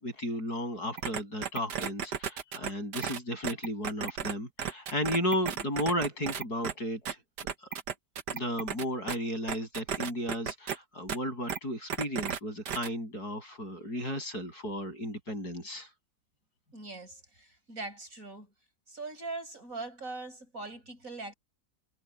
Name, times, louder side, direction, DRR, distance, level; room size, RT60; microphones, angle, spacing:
voice 1, 0.0-7.2 8.3-15.9, equal, 65° left, 8.7 m, -34 dB
sound 1, 1.0-4.3 4.6-6.7 7.1-9.2 9.5-10.8 11.1-11.2 11.5-11.6 11.9-12.4 12.7-12.9, right 7 dB, 80° right, 1.9 m, -34 dB
voice 2, 16.7-18.5 18.9-21.3, right 3 dB, 50° right, 7.3 m, -41 dB
omnidirectional pair, 1.8 m